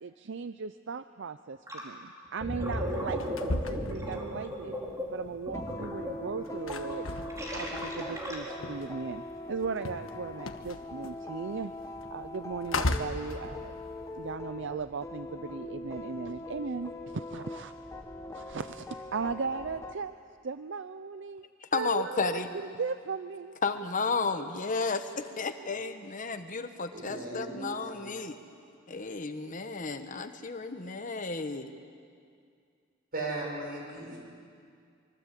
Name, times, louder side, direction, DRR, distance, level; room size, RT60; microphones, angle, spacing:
voice 1, 0.0-4.8 5.1-7.1 7.5-11.7 12.1-13.8 14.2-17.7 18.3-20.2 20.4-21.5 21.7-23.6, right 5 dB, 65° right, 12 dB, 0.5 m, -37 dB
Gurgling, 1.7-1.9 2.3-8.7, equal, 15° right, 4.2 m, -36 dB
sound 1, 2.9-5.0 5.3-9.2 9.4-14.2, left 2 dB, 75° left, 1.4 m, -36 dB
sound 2, 4.8-19.9, left 2 dB, 15° left, 1.3 m, -42 dB
voice 2, 21.6-22.5 23.6-28.4 28.9-31.7, left 4 dB, 40° left, 8 dB, 1.1 m, -33 dB
voice 3, 26.9-28.1 33.1-34.2, right 2 dB, 45° right, -1 dB, 7.1 m, -37 dB
25.0 x 24.0 x 8.3 m, 2.3 s
head